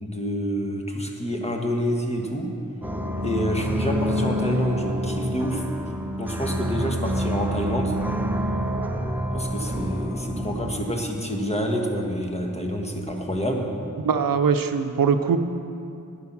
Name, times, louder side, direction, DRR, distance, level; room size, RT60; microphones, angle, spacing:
voice 1, 0.0-2.5 3.2-5.6 6.2-8.0 9.3-13.7, equal, 20° left, 1 dB, 1.5 m, -27 dB
sound 1, 2.8-10.8, equal, 5° right, 0.7 m, -27 dB
voice 2, 14.0-15.4, right 6 dB, 75° right, 8 dB, 0.6 m, -21 dB
9.8 x 9.6 x 6.0 m, 2.6 s
wide cardioid pair, 50°, 34 cm